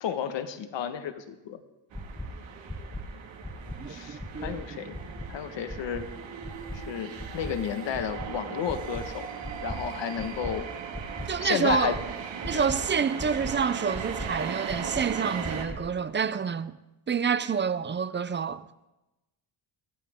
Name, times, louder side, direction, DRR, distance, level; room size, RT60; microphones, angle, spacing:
voice 1, 0.0-1.6 3.9-5.0 5.3-6.0 6.7-9.4 9.6-10.6 11.4-12.0 12.5-12.7, left 8 dB, 75° left, 1.4 m, -32 dB
sound 1, 1.9-2.3 2.7-3.0 3.4-3.8 4.2-4.5 4.9-5.3 5.7-6.0 6.4-6.8 7.2-7.5 7.9-8.3 8.7-9.0 9.4-9.8 10.2-10.5 10.9-11.3 11.7-12.0 12.4-12.8 13.2-13.5 13.9-14.3 14.7-15.0 15.4-15.8, left 1 dB, 5° left, 1.0 m, -37 dB
sound 2, 1.9-15.6, right 7 dB, 90° right, 2.1 m, -38 dB
voice 2, 3.8-4.6 11.3-12.0 12.4-16.8 17.1-18.6, right 6 dB, 25° right, 0.5 m, -28 dB
23.5 x 15.5 x 3.7 m
cardioid pair, 135°, 43 cm